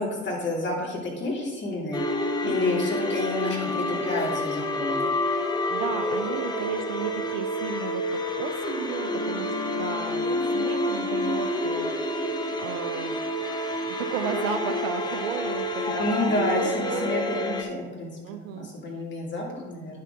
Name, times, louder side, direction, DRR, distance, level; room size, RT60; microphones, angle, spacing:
voice 1, 0.0-5.1 16.0-20.0, left 2 dB, 25° left, -3 dB, 2.7 m, -29 dB
sound 1, 1.9-17.6, left 1 dB, 10° left, 0.8 m, -28 dB
voice 2, 5.4-13.2 13.9-17.1 18.2-18.7 18.9-19.0, right 8 dB, 60° right, 9 dB, 0.7 m, -35 dB
9.4 x 6.6 x 3.6 m, 1.2 s
figure-of-eight pair, 80°, 44 cm